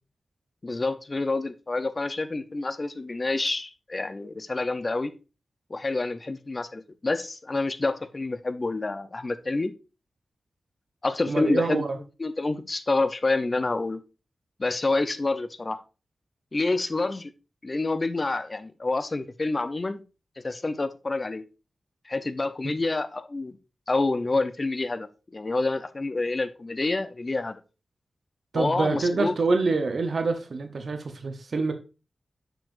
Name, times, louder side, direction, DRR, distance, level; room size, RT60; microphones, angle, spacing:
voice 1, 0.6-5.1 5.7-9.7 11.0-11.8 12.2-14.0 14.6-15.8 16.5-17.3 17.6-20.0 20.4-21.4 22.1-23.6 23.9-27.6 28.5-29.3, left 3 dB, 40° left, 11 dB, 0.6 m, -28 dB
voice 2, 11.3-12.0 28.5-31.7, right 3 dB, 70° right, 6 dB, 0.8 m, -26 dB
6.9 x 6.0 x 2.5 m, 0.31 s
wide cardioid pair, 75°, 0 cm